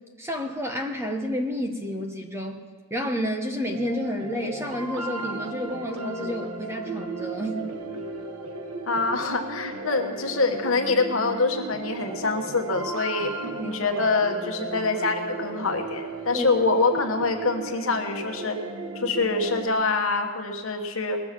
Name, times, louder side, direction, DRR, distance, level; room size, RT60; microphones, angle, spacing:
voice 1, 0.2-2.6 2.9-7.7 13.6-13.9 14.6-14.7 16.3-16.5, equal, 10° right, 3 dB, 0.9 m, -30 dB
sound 1, 3.7-19.7, right 3 dB, 90° right, 1.2 m, -35 dB
voice 2, 8.9-13.3 13.6-18.6 18.9-21.2, left 3 dB, 70° left, 4 dB, 1.3 m, -25 dB
20.5 x 7.6 x 5.9 m, 1.5 s
head